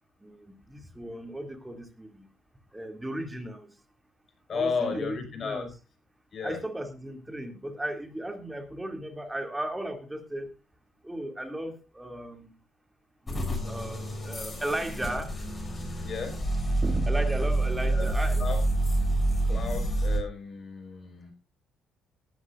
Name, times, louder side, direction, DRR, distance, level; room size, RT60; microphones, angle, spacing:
voice 1, 0.2-2.3 2.7-3.7 4.5-5.7 6.4-10.5 11.0-12.5 13.2-15.3 16.8-18.4, right 1 dB, 10° right, 5 dB, 2.8 m, -36 dB
voice 2, 4.5-5.6 6.3-6.6 16.0-16.4 17.8-18.6 19.4-21.3, left 5 dB, 45° left, 4 dB, 5.1 m, -34 dB
sound 1, 13.3-20.2, right 1 dB, 25° left, 7.1 m, -28 dB
18.5 x 12.5 x 2.6 m, 0.27 s
cardioid pair, 90°, 0 cm